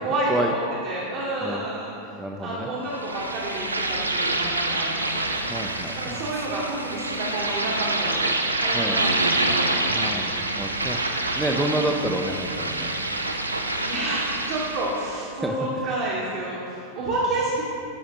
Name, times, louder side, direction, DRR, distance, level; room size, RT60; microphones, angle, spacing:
voice 1, 0.0-1.9 2.4-5.4 6.0-10.5 11.5-11.9 13.5-17.7, right 2 dB, 45° right, -5 dB, 1.2 m, -30 dB
voice 2, 2.2-2.7 5.5-6.3 8.7-9.0 9.9-12.9 15.4-15.6, right 1 dB, 5° right, 2 dB, 0.4 m, -29 dB
sound 1, 2.9-15.2, right 2 dB, 80° right, 0.4 m, -27 dB
12.5 x 5.0 x 2.9 m, 2.7 s
figure-of-eight pair, 90°, 0 cm